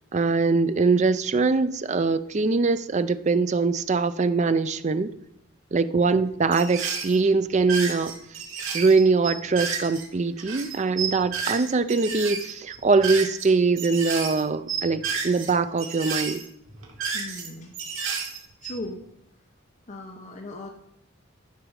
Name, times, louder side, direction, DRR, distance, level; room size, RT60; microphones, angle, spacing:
voice 1, 0.1-5.1 5.7-8.1 8.7-16.4, right 4 dB, 35° right, 12 dB, 0.4 m, -22 dB
sound 1, 6.5-7.2 7.5-10.1 10.4-13.5 13.8-14.4 14.7-15.5 15.8-17.5 17.7-18.9, right 6 dB, 90° right, 2.5 m, -32 dB
voice 2, 17.1-17.7 18.6-19.1 19.9-20.7, left 1 dB, 35° left, 3 dB, 0.9 m, -37 dB
14.0 x 6.1 x 4.8 m, 0.80 s
head